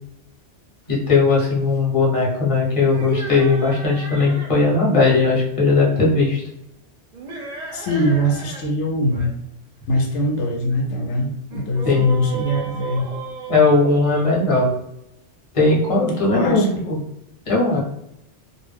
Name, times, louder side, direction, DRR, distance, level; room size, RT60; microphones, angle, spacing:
voice 1, 0.9-6.4 11.8-12.1 13.5-14.7 15.5-17.0 17.5-17.8, left 3 dB, 30° left, -4 dB, 0.8 m, -18 dB
sound 1, 2.8-4.6 7.1-8.6 8.9-9.3 11.5-14.4, right 5 dB, 55° right, 0.5 m, -34 dB
voice 2, 7.7-9.3 9.9-13.1 16.2-16.8, equal, 85° left, 2 dB, 0.9 m, -22 dB
2.3 x 2.0 x 3.3 m, 0.83 s
omnidirectional pair, 1.2 m